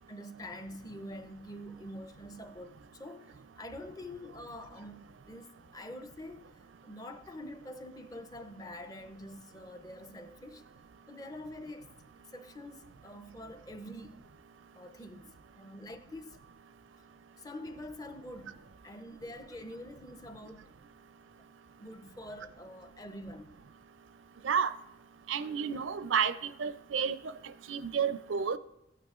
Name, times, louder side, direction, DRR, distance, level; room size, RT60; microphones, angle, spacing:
voice 1, 0.1-10.7 11.1-11.9 12.3-14.2 14.7-16.4 17.4-20.7 21.4-21.5 21.8-23.5, left 1 dB, 20° left, 0.6 m, -46 dB
voice 2, 25.3-27.2 27.7-28.6, right 7 dB, 80° right, 0.5 m, -30 dB
15.0 x 9.0 x 2.4 m
head